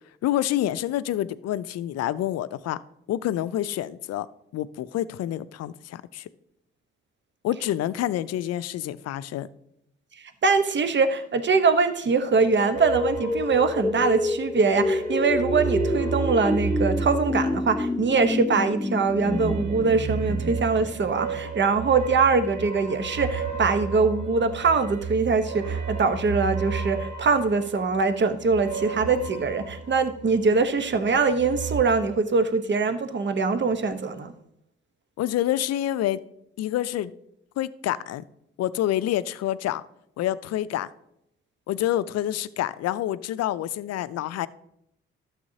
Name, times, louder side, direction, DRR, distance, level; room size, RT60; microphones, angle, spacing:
voice 1, 0.2-2.8 3.1-4.3 4.5-6.3 7.4-9.5 35.2-36.2 36.6-37.1 37.6-38.2 38.6-39.8 40.2-40.9 41.7-44.5, left 12 dB, 60° left, 17 dB, 0.5 m, -27 dB
voice 2, 10.4-34.3, right 4 dB, 40° right, 10 dB, 1.0 m, -23 dB
sound 1, 12.5-21.4, left 2 dB, 5° left, 0.3 m, -29 dB
sound 2, 12.7-14.4 14.7-18.2 19.1-30.4 30.8-31.8, right 5 dB, 70° right, 1.7 m, -33 dB
12.0 x 7.3 x 2.8 m, 0.78 s
hypercardioid pair, 45°, 29 cm